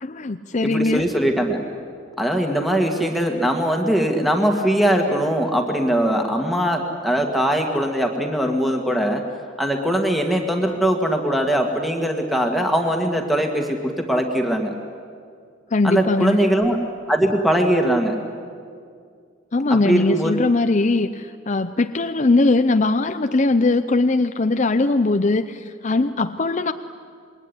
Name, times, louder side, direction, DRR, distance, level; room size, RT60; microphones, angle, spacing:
voice 1, 0.0-1.0 15.7-16.4 19.5-26.7, left 3 dB, 35° left, 8 dB, 0.6 m, -20 dB
voice 2, 0.6-1.6 2.2-9.2 9.6-14.7 15.8-16.8 17.1-18.2 19.7-20.3, right 1 dB, ahead, 2 dB, 1.9 m, -21 dB
27.5 x 21.5 x 10.0 m, 2.2 s
head